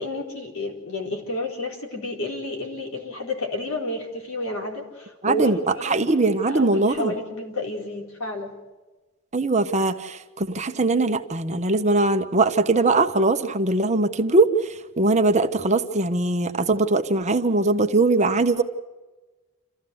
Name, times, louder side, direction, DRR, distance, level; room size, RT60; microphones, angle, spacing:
voice 1, 0.0-6.1 6.4-8.5, left 1 dB, 75° left, 1 dB, 4.4 m, -31 dB
voice 2, 5.2-7.1 9.3-18.6, right 2 dB, 35° right, 7 dB, 1.1 m, -21 dB
28.0 x 14.5 x 7.9 m, 1.2 s
head